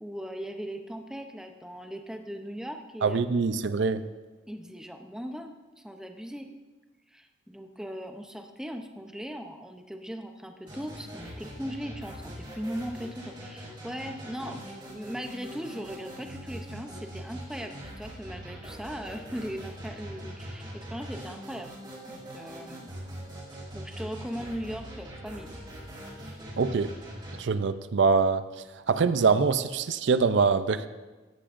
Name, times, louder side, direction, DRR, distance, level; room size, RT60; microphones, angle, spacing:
voice 1, 0.0-3.2 4.5-6.5 7.1-14.6 14.9-21.7 22.1-22.9 23.7-25.6, equal, 5° right, 5 dB, 0.6 m, -39 dB
voice 2, 3.0-4.0 26.6-26.9 27.4-28.5 28.9-30.9, right 5 dB, 65° right, 12 dB, 0.5 m, -24 dB
sound 1, 10.7-27.4, equal, 25° right, 3.6 m, -42 dB
14.0 x 10.0 x 2.5 m, 1.3 s
head